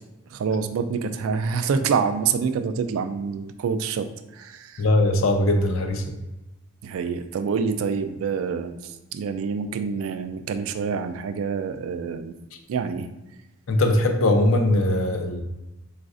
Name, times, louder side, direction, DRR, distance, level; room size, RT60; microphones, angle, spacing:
voice 1, 0.3-4.9 6.8-12.4 12.7-13.1, right 6 dB, 85° right, 9 dB, 0.3 m, -27 dB
voice 2, 4.8-6.0 13.7-15.4, left 1 dB, 75° left, 4 dB, 0.5 m, -20 dB
4.0 x 2.4 x 2.4 m, 1.0 s
head